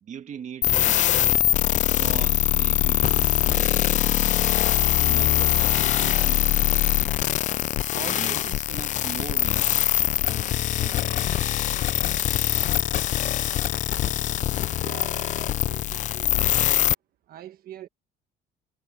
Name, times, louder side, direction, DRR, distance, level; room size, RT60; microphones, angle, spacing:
voice 1, 0.0-1.4 2.0-4.1 5.0-6.9 7.9-11.5 14.0-14.5, right 8 dB, 45° right, 1.5 m, -41 dB
sound 1, 0.6-16.9, left 12 dB, 45° left, 0.4 m, -23 dB
voice 2, 14.8-16.4 17.3-17.9, right 12 dB, 60° right, 1.3 m, -44 dB
cardioid pair, 110°, 17 cm